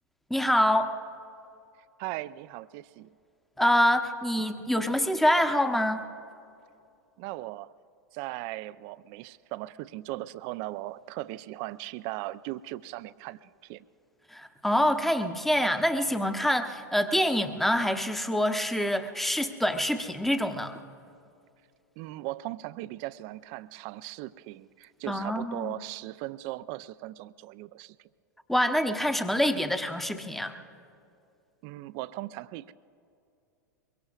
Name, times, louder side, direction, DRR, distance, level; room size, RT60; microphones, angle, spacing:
voice 1, 0.3-0.9 3.6-6.1 14.3-20.8 25.1-25.7 28.5-30.6, equal, ahead, 8 dB, 0.9 m, -26 dB
voice 2, 2.0-3.1 7.2-7.7 8.1-13.8 22.0-28.0 31.6-32.7, right 17 dB, 45° right, 16 dB, 0.4 m, -38 dB
23.5 x 23.0 x 2.4 m, 2.6 s
figure-of-eight pair, 90°, 10 cm